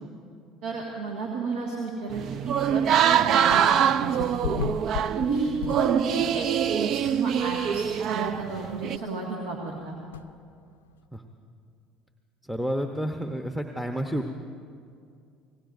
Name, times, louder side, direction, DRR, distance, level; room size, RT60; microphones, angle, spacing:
voice 1, 0.6-4.5 5.1-5.5 5.8-10.0, right 4 dB, 75° right, -1 dB, 1.8 m, -32 dB
sound 1, 2.1-9.0, right 9 dB, 55° right, 0.4 m, -24 dB
sound 2, 3.5-3.8 4.2-6.3 6.7-6.8 7.4-7.5 7.7-7.8 8.2-8.3 10.1-10.3, left 8 dB, 85° left, 0.4 m, -34 dB
voice 2, 12.4-14.3, equal, 5° right, 4 dB, 0.9 m, -30 dB
26.5 x 18.5 x 2.6 m, 2.3 s
hypercardioid pair, 65°, 0 cm